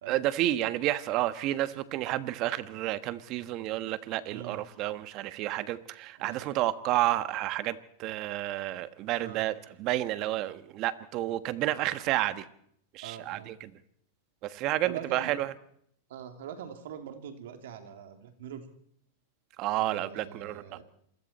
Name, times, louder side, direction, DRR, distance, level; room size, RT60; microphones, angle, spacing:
voice 1, 0.1-12.5 12.9-13.7 14.4-15.5 19.6-20.8, right 15 dB, 45° right, 12 dB, 1.4 m, -30 dB
voice 2, 4.3-4.6 6.2-6.5 9.2-9.4 11.9-12.0 13.0-13.5 14.8-15.4 16.1-18.7 19.8-20.8, right 9 dB, 70° right, 6 dB, 3.0 m, -43 dB
27.5 x 22.0 x 4.4 m, 0.69 s
hypercardioid pair, 115°, 0 cm